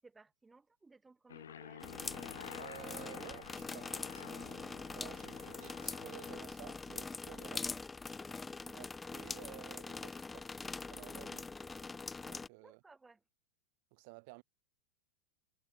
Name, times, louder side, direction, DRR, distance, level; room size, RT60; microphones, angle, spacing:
voice 1, 0.0-1.9 8.6-8.9 12.6-13.2, right 3 dB, 10° right, 6.5 m, -60 dB
Aircraft, 1.3-6.4, left 9 dB, 65° left, 1.2 m, -51 dB
sound 1, 1.8-12.5, left 4 dB, 10° left, 1.2 m, -43 dB
voice 2, 2.6-7.8 8.7-8.9 9.1-11.5 12.2-12.8 13.9-14.4, right 31 dB, 45° right, 7.9 m, -54 dB
figure-of-eight pair, 90°, 0 cm